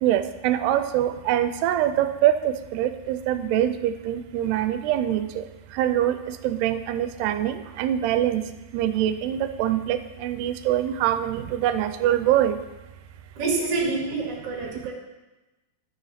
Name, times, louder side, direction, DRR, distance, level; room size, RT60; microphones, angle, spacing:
voice 1, 0.0-5.3 5.7-6.2 6.4-8.4 8.7-12.6, right 11 dB, 85° right, 11 dB, 2.6 m, -24 dB
voice 2, 13.4-14.9, right 3 dB, 40° right, -1 dB, 2.8 m, -27 dB
12.5 x 6.9 x 5.8 m, 1.1 s
omnidirectional pair, 4.7 m